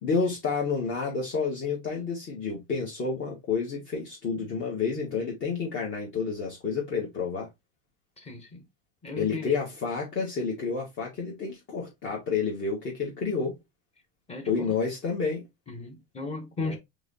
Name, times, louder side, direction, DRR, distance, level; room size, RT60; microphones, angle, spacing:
voice 1, 0.0-7.5 9.2-13.5 14.5-15.4 16.6-16.8, left 5 dB, 40° left, 1.7 m, -29 dB
voice 2, 8.2-8.6 9.0-9.5 14.3-14.7 15.7-16.8, left 3 dB, 20° left, 1.2 m, -36 dB
4.7 x 3.3 x 2.8 m
supercardioid pair, 145°, 32 cm